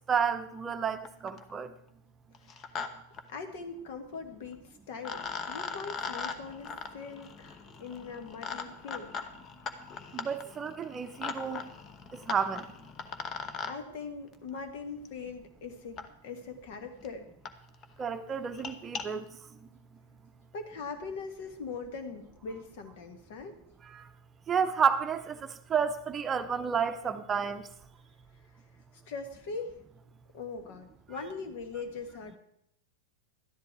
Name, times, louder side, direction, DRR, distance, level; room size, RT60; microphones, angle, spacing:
voice 1, 0.1-1.7 10.1-11.7 12.1-12.7 18.0-19.3 23.9-24.0 24.5-27.6, right 6 dB, 25° right, 0.7 m, -31 dB
sound 1, 0.7-0.8 1.1-1.5 2.3-2.9 3.1-3.2 4.5-4.6 5.0-13.7 15.1-15.2 16.0-16.1 16.7-16.8 17.0-17.1 17.5-17.6 17.8-18.0 18.4-19.0, left 5 dB, 35° left, 1.1 m, -40 dB
voice 2, 3.3-9.2 13.7-16.0 16.2-17.3 20.5-23.5 29.1-29.8 30.3-32.4, left 4 dB, 60° left, 1.6 m, -41 dB
12.5 x 10.5 x 4.7 m
figure-of-eight pair, 95°, 0 cm